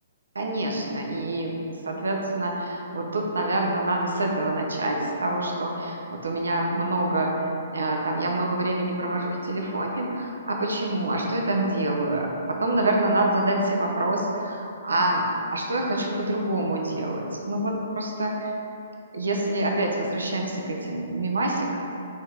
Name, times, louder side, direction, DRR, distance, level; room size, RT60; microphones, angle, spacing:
voice 1, 0.3-18.3 19.1-21.7, right 1 dB, 90° right, 1 dB, 0.6 m, -26 dB
4.9 x 2.8 x 3.3 m, 2.7 s
hypercardioid pair, 140°, 0 cm